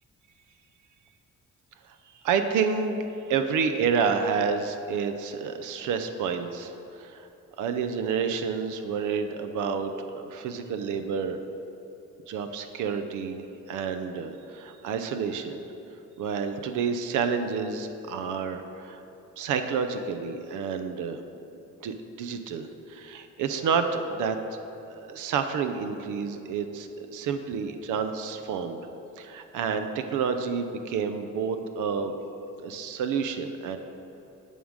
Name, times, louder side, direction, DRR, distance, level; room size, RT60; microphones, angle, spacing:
voice 1, 2.2-7.3 7.6-11.4 12.3-15.6 16.2-19.0 19.4-21.2 21.8-24.4 24.9-28.8 29.2-32.1 32.6-33.8, right 6 dB, 80° right, 8 dB, 0.6 m, -29 dB
11.0 x 3.7 x 6.2 m, 2.9 s
cardioid pair, 90°, 30 cm